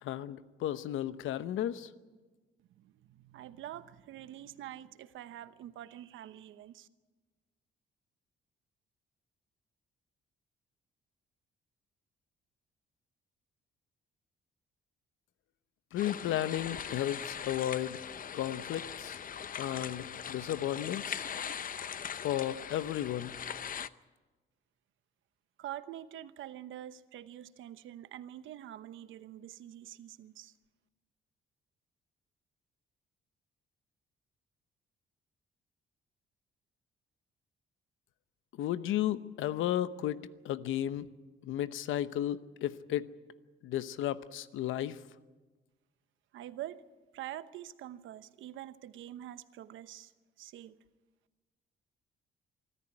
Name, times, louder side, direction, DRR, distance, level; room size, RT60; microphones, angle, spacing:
voice 1, 0.0-1.9 15.9-18.0 18.3-19.2 19.6-21.3 22.2-23.4 38.6-41.1 41.4-43.1 43.6-45.0, left 12 dB, 85° left, 14 dB, 1.0 m, -34 dB
voice 2, 2.8-6.9 25.6-30.5 46.3-46.8 47.1-50.1 50.4-50.8, right 12 dB, 85° right, 13 dB, 1.0 m, -46 dB
sound 1, 16.0-23.9, left 8 dB, 45° left, 0.7 m, -41 dB
25.0 x 13.5 x 9.9 m, 1.3 s
cardioid pair, 90°, 20 cm